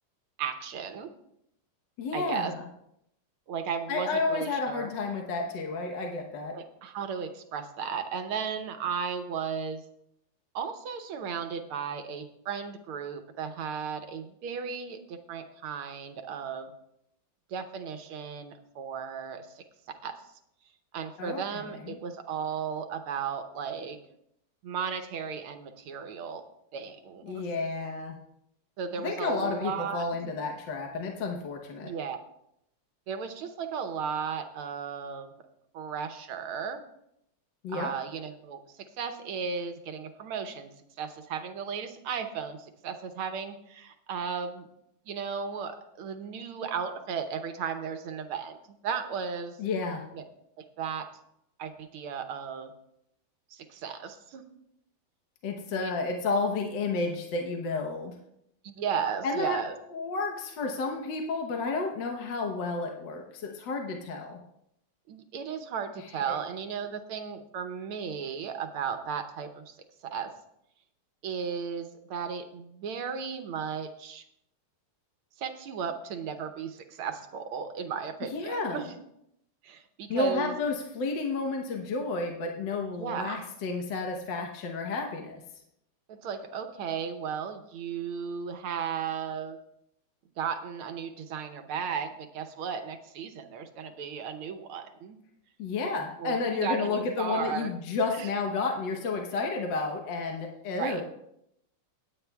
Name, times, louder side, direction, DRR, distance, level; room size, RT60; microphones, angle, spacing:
voice 1, 0.4-1.1 2.1-2.5 3.5-4.9 6.5-9.8 10.6-16.7 17.5-19.6 20.0-20.1 20.9-24.0 24.6-26.4 26.7-27.4 28.8-30.2 31.8-32.2 33.1-35.3 35.7-36.8 37.7-38.6 39.0-40.7 41.0-44.7 45.1-49.6 50.1-50.2 50.6-51.1 51.6-52.7 53.5-54.4 55.7-55.9 58.6-59.7 65.1-69.7 70.1-70.3 71.2-74.2 75.4-79.0 79.6-80.5 83.0-83.4 86.1-89.6 90.4-95.2 96.2-97.7 98.1-98.3 100.8-101.0, right 6 dB, 80° right, 7 dB, 1.8 m, -35 dB
voice 2, 2.0-2.6 3.9-6.6 21.2-22.0 27.2-28.2 29.0-31.9 37.6-37.9 49.6-50.0 55.4-58.1 59.2-59.6 59.9-64.4 66.3-66.4 78.3-78.8 80.1-85.4 95.6-101.0, left 3 dB, 60° left, 2 dB, 1.6 m, -31 dB
18.5 x 8.9 x 2.3 m, 0.77 s
omnidirectional pair, 2.4 m